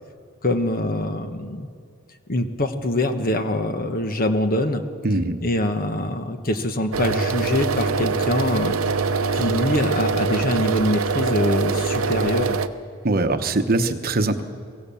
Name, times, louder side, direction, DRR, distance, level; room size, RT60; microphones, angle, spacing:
voice 1, 0.4-1.7 2.3-4.8 5.4-8.8 9.3-12.6, left 1 dB, 45° left, 7 dB, 1.3 m, -24 dB
voice 2, 5.0-5.4 13.0-14.4, right 2 dB, 45° right, 8 dB, 1.0 m, -21 dB
sound 1, 6.9-12.7, right 4 dB, 75° right, 0.8 m, -23 dB
24.0 x 17.0 x 7.1 m, 2.2 s
head